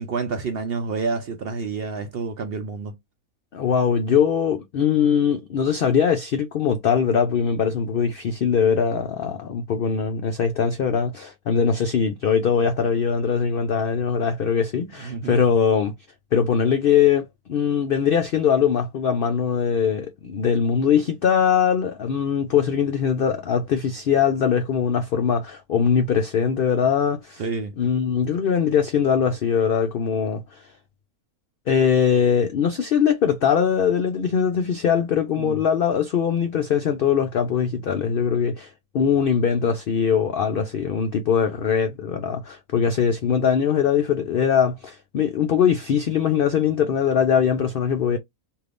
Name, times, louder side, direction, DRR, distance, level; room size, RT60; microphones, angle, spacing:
voice 1, 0.0-3.0 15.0-15.4 27.4-27.7 35.4-35.6, right 4 dB, 65° right, 0.6 m, -28 dB
voice 2, 3.5-15.9 16.3-27.4 27.8-30.7 31.7-48.2, left 7 dB, 90° left, 0.4 m, -21 dB
3.4 x 2.6 x 2.4 m
omnidirectional pair, 1.5 m